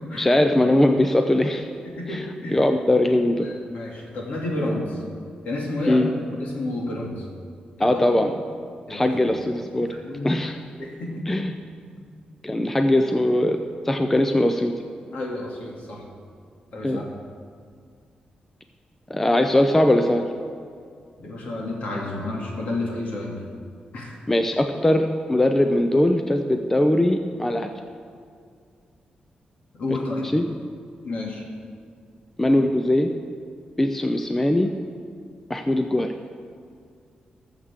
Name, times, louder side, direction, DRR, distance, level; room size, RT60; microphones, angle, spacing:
voice 1, 0.2-1.7 2.1-3.5 5.9-6.1 7.8-8.3 8.9-9.9 10.2-10.6 11.3-11.5 12.4-13.6 13.9-14.7 16.8-17.0 19.1-20.2 24.3-27.7 30.3-30.4 32.4-33.1 33.8-34.7 35.5-36.1, left 1 dB, 10° left, 5 dB, 0.4 m, -20 dB
voice 2, 1.8-2.6 3.4-5.0 5.4-6.1 6.4-7.3 7.8-8.2 8.9-9.5 9.8-10.3 10.8-11.2 15.1-16.0 16.7-17.1 21.2-23.4 23.9-24.2 29.8-30.3 31.0-31.4, left 2 dB, 60° left, -2 dB, 2.4 m, -31 dB
20.0 x 7.4 x 3.6 m, 2.2 s
wide cardioid pair, 160°, 3 cm